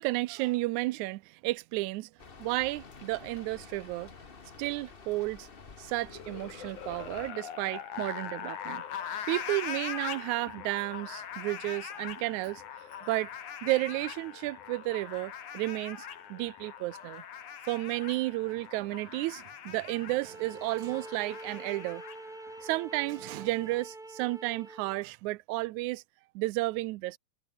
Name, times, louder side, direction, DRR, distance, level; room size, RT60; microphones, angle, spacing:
voice 1, 0.0-2.1 2.4-4.1 4.6-5.5 5.8-12.6 13.0-13.3 13.6-17.2 17.6-22.0 22.6-26.0 26.4-27.2, right 20 dB, 85° right, 2.0 m, -32 dB
Rain, 2.2-7.3, left 4 dB, 40° left, 0.8 m, -50 dB
sound 1, 6.0-23.0, left 8 dB, 80° left, 3.7 m, -42 dB
sound 2, 20.1-25.1, right 2 dB, 15° right, 3.2 m, -46 dB
omnidirectional pair, 3.4 m